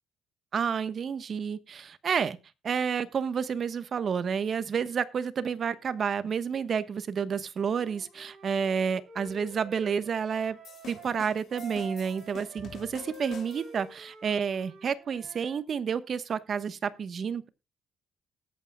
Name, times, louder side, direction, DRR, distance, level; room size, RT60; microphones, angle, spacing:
voice 1, 0.5-2.4 2.6-10.6 10.9-17.5, right 6 dB, 50° right, 1.1 m, -30 dB
Wind instrument woodwind instrument, 7.6-15.6, right 3 dB, 70° right, 6.6 m, -48 dB
sound 1, 10.6-13.9, left 7 dB, 65° left, 2.7 m, -48 dB
19.5 x 8.7 x 2.3 m
cardioid pair, 90°, 0 cm